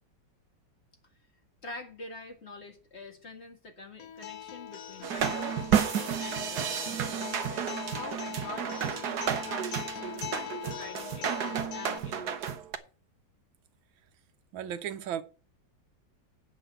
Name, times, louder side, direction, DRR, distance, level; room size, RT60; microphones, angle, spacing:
voice 1, 1.6-12.6, left 3 dB, 35° left, 2.1 m, -46 dB
Acoustic guitar, 4.0-12.0, left 10 dB, 60° left, 1.1 m, -41 dB
sound 1, 5.0-12.8, right 8 dB, 60° right, 1.5 m, -31 dB
voice 2, 14.5-15.2, right 9 dB, 90° right, 1.6 m, -35 dB
9.0 x 6.3 x 7.6 m
omnidirectional pair, 2.1 m